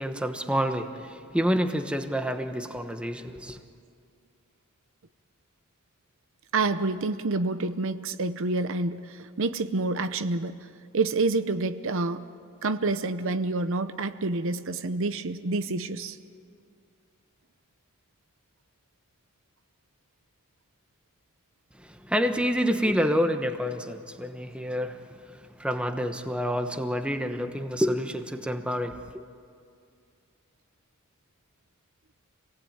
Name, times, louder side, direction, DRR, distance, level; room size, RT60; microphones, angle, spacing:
voice 1, 0.0-3.6 21.8-25.0 25.3-29.1, equal, 5° right, 1.1 m, -28 dB
voice 2, 6.5-10.6 10.9-12.2 12.6-16.2, right 3 dB, 65° right, 0.8 m, -28 dB
26.5 x 18.5 x 8.9 m
head